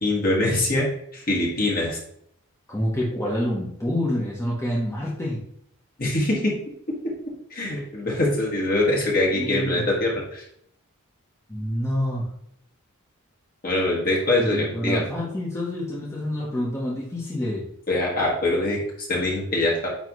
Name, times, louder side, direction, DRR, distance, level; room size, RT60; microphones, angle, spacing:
voice 1, 0.0-0.9 1.1-2.0 6.0-6.6 6.9-7.0 7.3-10.4 13.6-15.0 17.9-19.9, left 1 dB, 45° left, -3 dB, 1.8 m, -23 dB
voice 2, 2.7-5.4 9.3-9.8 11.5-12.3 14.4-17.7, left 1 dB, 15° left, -5 dB, 1.2 m, -27 dB
9.2 x 3.3 x 3.1 m, 0.71 s
head